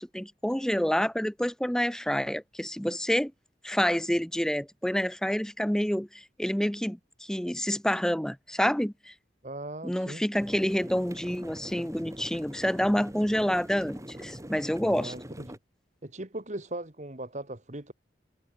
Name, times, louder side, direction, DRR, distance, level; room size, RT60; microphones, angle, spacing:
voice 1, 0.0-3.3 3.6-9.1 9.8-15.1, equal, 5° left, 0.7 m, -28 dB
voice 2, 9.4-10.2 14.8-15.6 16.0-17.9, right 1 dB, 40° right, 2.1 m, -39 dB
sound 1, 10.4-15.6, equal, 15° right, 3.7 m, -43 dB
head